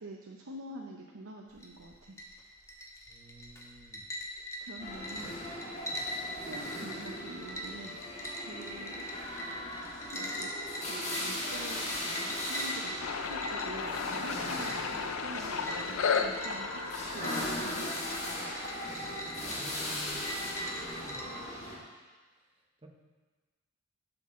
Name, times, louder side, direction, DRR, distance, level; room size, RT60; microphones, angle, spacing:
voice 1, 0.0-2.2 4.3-5.4 6.4-9.1 10.1-10.5 10.8-17.9, right 2 dB, 75° right, 0 dB, 0.7 m, -46 dB
sound 1, 1.5-21.4, equal, 15° left, 0.9 m, -42 dB
voice 2, 3.1-4.0 5.1-5.4 5.9-6.1 19.4-21.7 22.8-22.9, right 1 dB, 25° right, 1 dB, 1.0 m, -52 dB
sound 2, 4.8-21.8, left 1 dB, 35° left, 1.6 m, -38 dB
sound 3, 13.0-19.5, left 6 dB, 70° left, 0.5 m, -35 dB
11.5 x 6.1 x 3.7 m, 1.3 s
head